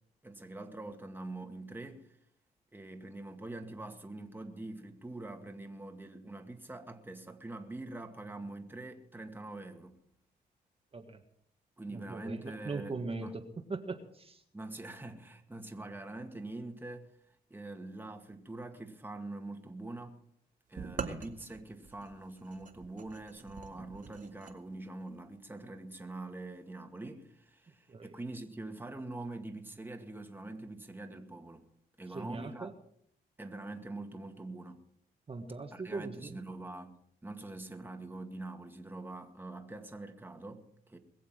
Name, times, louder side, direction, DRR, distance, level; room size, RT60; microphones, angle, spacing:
voice 1, 0.2-2.2 2.7-10.0 11.8-13.3 14.5-20.2 20.7-31.6 32.0-32.7 33.4-34.8 35.7-37.0 37.2-41.0, right 2 dB, 10° right, 2.1 m, -44 dB
voice 2, 11.9-14.4 27.9-28.1 32.1-32.7 35.3-36.4, right 3 dB, 35° right, 1.7 m, -40 dB
sound 1, 20.8-24.6, right 5 dB, 50° right, 2.1 m, -44 dB
22.0 x 7.5 x 7.4 m
cardioid pair, 90°, 17 cm